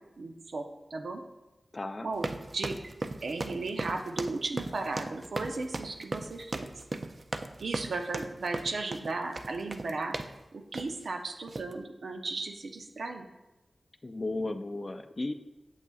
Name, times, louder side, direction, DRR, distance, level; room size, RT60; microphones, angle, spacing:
voice 1, 0.2-0.6 0.9-1.2 2.0-2.3 2.5-2.9 3.2-6.7 7.6-10.2 10.5-13.3, right 3 dB, 85° right, 4 dB, 0.7 m, -35 dB
voice 2, 1.7-2.1 14.0-15.3, left 2 dB, 35° left, 9 dB, 0.4 m, -34 dB
sound 1, 2.1-10.4 10.7-11.0 11.5-11.7, right 2 dB, 45° right, 0.4 m, -37 dB
8.2 x 7.2 x 2.3 m, 1.0 s
wide cardioid pair, 85°, 0 cm